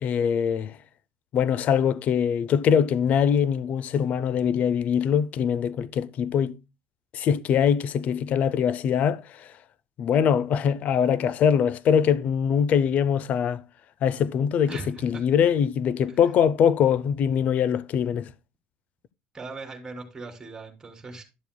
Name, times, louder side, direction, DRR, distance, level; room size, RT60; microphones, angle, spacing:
voice 1, 0.0-0.8 1.3-6.6 7.1-9.5 10.0-13.6 14.0-18.3, left 8 dB, 50° left, 0.5 m, -23 dB
voice 2, 14.7-15.2 16.1-16.2 19.3-21.2, right 3 dB, 15° right, 3.1 m, -39 dB
12.5 x 7.0 x 2.2 m
cardioid pair, 125°, 3 cm